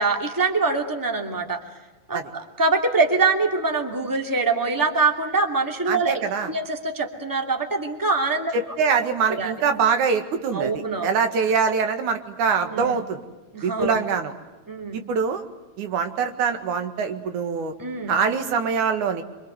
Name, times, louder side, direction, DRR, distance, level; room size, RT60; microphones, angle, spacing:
voice 1, 0.0-1.6 2.1-6.2 6.5-8.5 9.3-9.5 10.5-11.1 12.6-13.0 13.5-14.0 14.7-15.0 17.8-18.2, right 3 dB, 5° right, 3 dB, 2.4 m, -24 dB
voice 2, 5.9-6.5 8.5-13.2 13.6-14.3 14.9-15.4 15.8-17.7 18.1-19.2, right 5 dB, 85° right, 7 dB, 3.3 m, -24 dB
26.5 x 25.0 x 8.1 m, 1.2 s
omnidirectional pair, 3.4 m